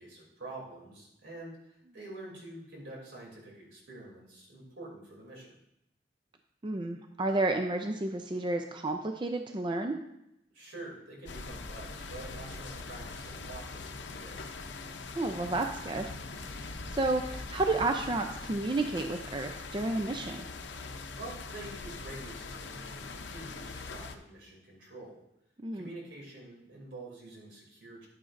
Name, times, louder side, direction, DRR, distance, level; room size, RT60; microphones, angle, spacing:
voice 1, 0.0-5.6 10.5-14.5 21.2-25.2 25.7-28.1, right 2 dB, 75° right, -2 dB, 2.9 m, -47 dB
voice 2, 6.6-10.0 15.1-16.1 16.4-20.5 25.6-25.9, right 2 dB, 25° right, 5 dB, 0.4 m, -31 dB
sound 1, 11.3-24.2, left 3 dB, 70° left, 0.7 m, -42 dB
10.0 x 8.9 x 2.6 m, 0.82 s
head